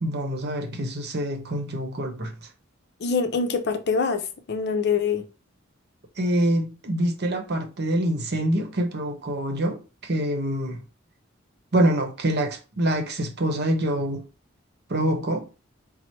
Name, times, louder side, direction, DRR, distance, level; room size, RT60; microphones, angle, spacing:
voice 1, 0.0-2.3 6.2-10.8 11.7-14.3 14.9-15.4, right 1 dB, 55° right, 0.8 m, -25 dB
voice 2, 3.0-5.2, left 5 dB, 55° left, 0.6 m, -24 dB
4.5 x 2.0 x 4.3 m
head